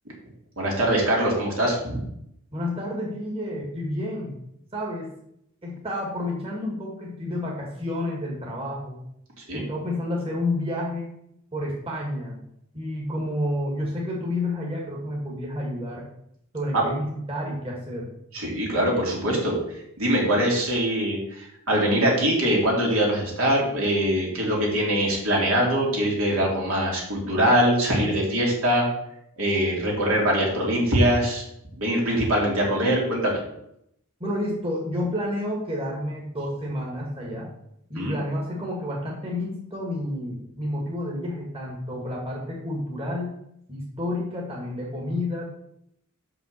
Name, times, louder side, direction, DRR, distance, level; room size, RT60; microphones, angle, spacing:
voice 1, 0.6-2.0 9.4-9.6 16.7-16.8 18.3-19.5 20.0-28.9 29.4-31.4 31.8-33.4 37.9-38.2, equal, 70° right, -2 dB, 3.0 m, -23 dB
voice 2, 2.5-4.4 4.7-5.1 5.6-9.0 9.5-11.1 11.5-12.4 12.7-16.1 16.5-18.1 34.2-37.5 37.9-43.3 43.7-45.5, left 1 dB, 30° right, -3 dB, 1.9 m, -30 dB
6.4 x 5.9 x 6.6 m, 0.75 s
head